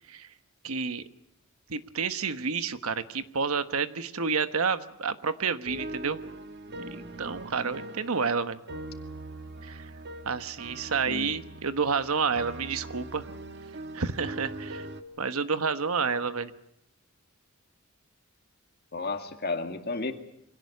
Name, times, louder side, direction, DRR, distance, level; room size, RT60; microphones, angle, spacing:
voice 1, 0.6-1.0 1.7-6.2 6.9-8.6 9.6-9.9 10.2-13.3 13.9-14.9 15.2-16.5, right 5 dB, 75° right, 11 dB, 1.2 m, -29 dB
sound 1, 5.7-15.0, right 1 dB, 50° right, 1.5 m, -41 dB
voice 2, 18.9-20.1, left 3 dB, 45° left, 6 dB, 2.2 m, -32 dB
25.0 x 18.0 x 9.6 m, 0.78 s
head